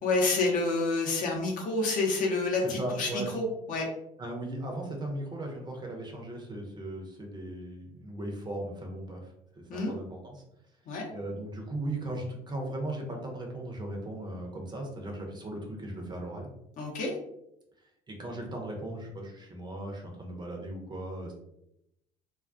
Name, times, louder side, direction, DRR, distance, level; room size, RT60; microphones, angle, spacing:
voice 1, 0.0-3.9 9.7-9.9 10.9-11.1 16.8-17.1, left 3 dB, 45° left, -1 dB, 0.7 m, -28 dB
voice 2, 2.6-3.3 4.2-10.4 11.1-16.5 18.1-21.3, right 1 dB, 25° right, 1 dB, 0.6 m, -37 dB
2.3 x 2.2 x 2.5 m, 0.82 s
figure-of-eight pair, 60°, 19 cm